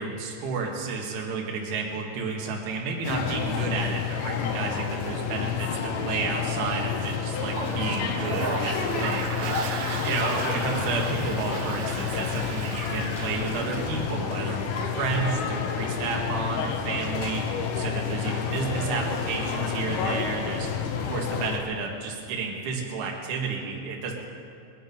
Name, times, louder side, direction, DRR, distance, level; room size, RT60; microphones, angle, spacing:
voice 1, 0.0-9.5 10.0-17.4 17.7-20.7 21.0-24.1, right 4 dB, 55° right, -1 dB, 2.6 m, -31 dB
sound 1, 3.0-21.6, left 7 dB, 85° left, 3.9 m, -29 dB
Toilet flush, 7.3-14.1, right 5 dB, 70° right, 3.0 m, -35 dB
22.5 x 10.5 x 5.4 m, 2.7 s
omnidirectional pair, 5.8 m